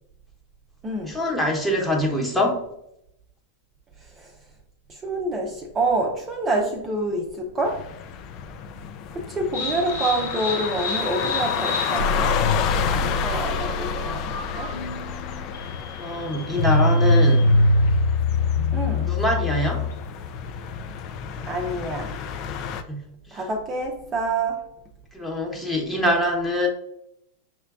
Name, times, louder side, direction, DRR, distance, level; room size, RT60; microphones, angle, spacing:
voice 1, 1.1-2.6 15.9-17.5 19.0-19.9 22.9-23.4 25.1-26.7, left 1 dB, 5° left, -1 dB, 1.0 m, -24 dB
voice 2, 4.9-7.8 9.1-12.4 12.8-14.7 18.7-19.1 21.4-22.1 23.3-24.6, right 2 dB, 25° right, 0 dB, 0.6 m, -27 dB
sound 1, 7.6-22.8, left 7 dB, 45° left, 0.3 m, -30 dB
sound 2, 9.5-20.1, left 2 dB, 70° left, 0.7 m, -24 dB
5.7 x 2.2 x 2.4 m, 0.77 s
hypercardioid pair, 95°, 0 cm